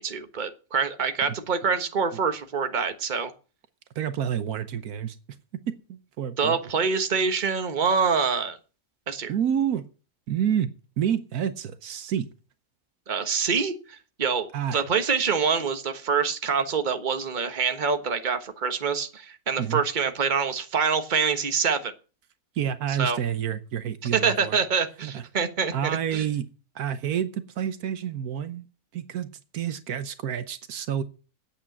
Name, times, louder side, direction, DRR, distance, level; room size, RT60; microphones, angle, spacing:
voice 1, 0.0-3.3 6.4-8.6 9.1-9.3 13.1-21.9 23.0-23.2 24.1-25.7 26.1-26.2, right 5 dB, 30° right, 8 dB, 1.3 m, -25 dB
voice 2, 3.9-5.2 5.7-6.6 9.3-9.8 10.3-12.3 14.5-14.8 19.6-19.8 22.5-24.6 25.0-25.2 25.7-26.5 26.7-28.6 28.9-31.0, right 9 dB, 75° right, 12 dB, 1.3 m, -29 dB
8.7 x 8.6 x 8.4 m, 0.35 s
omnidirectional pair, 1.6 m